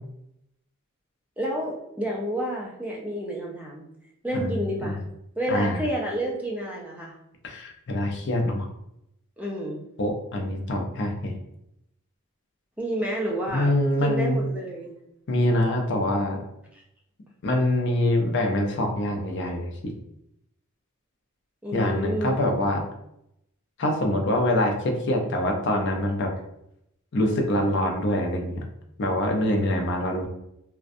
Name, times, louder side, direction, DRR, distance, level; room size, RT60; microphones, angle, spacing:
voice 1, 1.4-3.8 4.2-5.0 5.4-7.2 9.4-9.8 12.8-13.7 14.0-14.9 16.7-16.8 21.6-22.4, right 1 dB, 5° right, -3 dB, 0.4 m, -30 dB
voice 2, 5.5-5.8 7.4-8.7 10.0-11.3 13.5-14.4 15.3-16.4 17.4-19.7 21.7-22.8 23.8-26.3 27.1-28.6 29.0-30.3, left 1 dB, 55° left, 2 dB, 0.4 m, -24 dB
2.5 x 2.2 x 2.5 m, 0.78 s
head